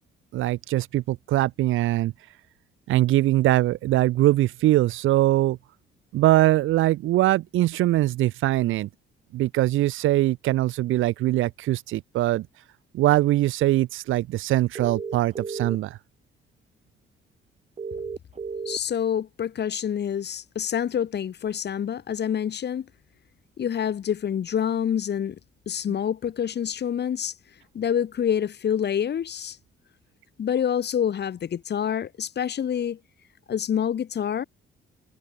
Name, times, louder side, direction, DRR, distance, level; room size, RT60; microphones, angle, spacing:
voice 1, 0.3-2.1 2.9-5.6 6.1-8.9 9.3-12.5 12.9-16.0, right 15 dB, 85° right, 1.0 m, -22 dB
sound 1, 14.8-15.8 17.8-18.8, right 5 dB, 35° right, 2.5 m, -33 dB
voice 2, 18.7-22.9 23.6-25.4 25.7-27.3 27.7-29.6 30.4-33.0 33.5-34.4, left 8 dB, 55° left, 4.2 m, -27 dB
cardioid pair, 90°, 20 cm